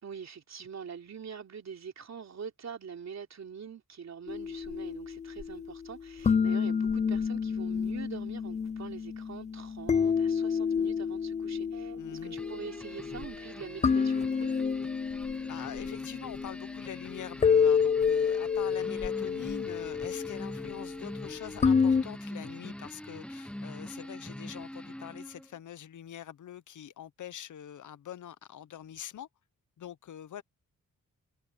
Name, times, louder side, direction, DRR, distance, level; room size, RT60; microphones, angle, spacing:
voice 1, 0.0-14.5, right 6 dB, 60° right, 3.3 m, -44 dB
sound 1, 4.3-22.0, left 6 dB, 25° left, 0.4 m, -29 dB
sound 2, 11.7-19.3, right 8 dB, 80° right, 6.2 m, -58 dB
voice 2, 12.0-12.4 15.5-29.3 29.8-30.4, left 10 dB, 70° left, 0.9 m, -44 dB
sound 3, 12.4-25.5, left 1 dB, 5° left, 0.9 m, -44 dB
cardioid pair, 105°, 31 cm